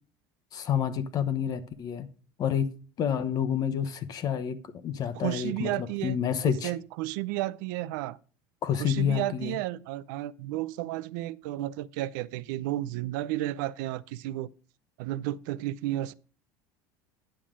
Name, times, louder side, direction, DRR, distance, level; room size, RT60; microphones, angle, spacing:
voice 1, 0.5-2.1 2.4-2.7 3.0-6.7 8.6-9.6, left 8 dB, 40° left, 1.0 m, -29 dB
voice 2, 5.1-6.2 6.6-8.2 8.8-14.5 15.0-16.1, right 15 dB, 80° right, 0.5 m, -32 dB
10.0 x 7.4 x 3.7 m
supercardioid pair, 135°, 10 cm